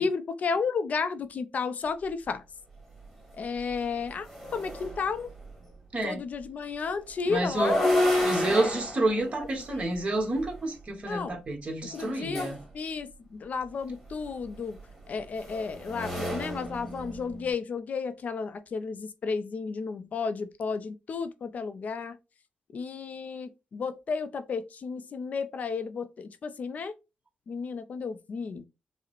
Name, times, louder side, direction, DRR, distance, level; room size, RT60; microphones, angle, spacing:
voice 1, 0.0-2.4 3.4-5.3 6.0-8.7 9.4-9.9 11.1-11.4 11.9-14.8 15.1-22.2 22.7-26.9 27.5-28.7, left 5 dB, 50° left, 0.4 m, -33 dB
sound 1, 3.0-3.1 3.5-5.5 7.3-10.6 11.9-12.6 14.1-17.5, left 1 dB, ahead, 1.4 m, -31 dB
voice 2, 7.3-7.8 8.2-12.6, right 2 dB, 40° right, 1.2 m, -29 dB
4.8 x 2.0 x 3.1 m
cardioid pair, 115°, 3 cm